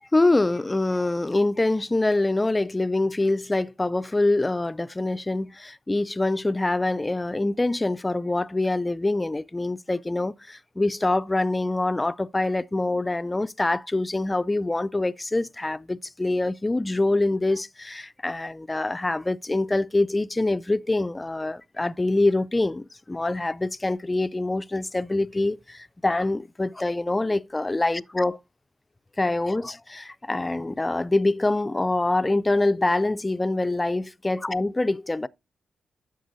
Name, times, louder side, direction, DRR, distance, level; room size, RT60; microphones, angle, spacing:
voice 1, 0.1-28.4 29.2-35.3, left 2 dB, 15° left, 0.3 m, -25 dB
10.0 x 6.7 x 2.6 m
cardioid pair, 100°, 0 cm